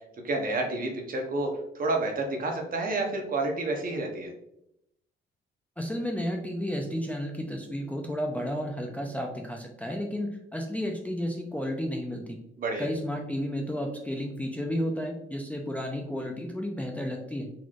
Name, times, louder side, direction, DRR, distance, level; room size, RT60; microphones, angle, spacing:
voice 1, 0.2-1.5 1.7-4.3 12.6-12.9, right 2 dB, 45° right, 2 dB, 0.9 m, -29 dB
voice 2, 5.8-12.4 12.8-17.5, equal, 5° left, 1 dB, 0.5 m, -32 dB
4.1 x 3.0 x 2.4 m, 0.79 s
cardioid pair, 90°, 20 cm